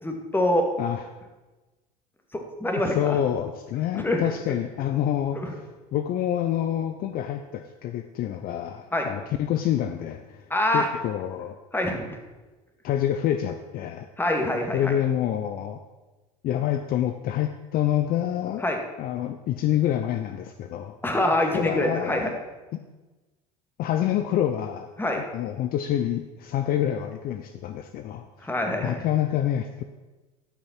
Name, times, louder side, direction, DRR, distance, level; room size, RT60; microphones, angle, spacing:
voice 1, 0.0-0.7 2.3-3.1 3.9-4.2 5.4-5.5 8.9-9.1 10.5-10.9 11.7-12.1 14.2-14.9 18.6-18.8 21.0-22.3 25.0-25.3 28.4-29.0, left 1 dB, 10° left, 3 dB, 1.8 m, -25 dB
voice 2, 2.9-10.5 10.7-11.6 12.8-14.1 14.7-15.8 16.4-18.6 19.0-21.0 21.5-22.4 23.8-28.5 28.8-29.8, left 11 dB, 50° left, 8 dB, 0.6 m, -27 dB
12.5 x 5.7 x 4.5 m, 1.2 s
hypercardioid pair, 75°, 19 cm